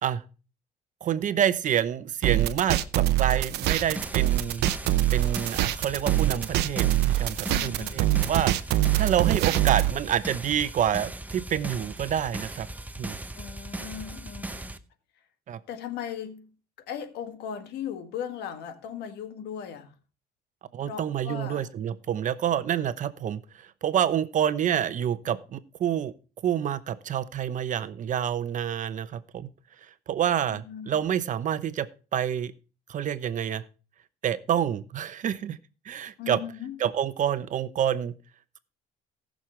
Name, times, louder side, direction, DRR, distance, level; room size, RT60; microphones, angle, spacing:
voice 1, 1.0-4.7 5.1-8.5 9.0-12.7 13.0-13.2 15.5-15.6 20.7-26.1 26.4-29.5 30.1-32.5 32.9-33.6 34.2-35.6 35.8-36.4 36.8-38.1, right 9 dB, 50° right, 0.9 m, -28 dB
sound 1, 2.2-9.9, right 15 dB, 80° right, 0.7 m, -24 dB
sound 2, 3.6-14.8, right 1 dB, 10° right, 0.8 m, -38 dB
voice 2, 7.5-8.6 13.3-14.7 15.7-16.5 16.8-19.9 20.8-21.7 30.5-31.0 36.2-36.8, left 8 dB, 80° left, 1.6 m, -38 dB
19.0 x 6.4 x 3.3 m
cardioid pair, 110°, 17 cm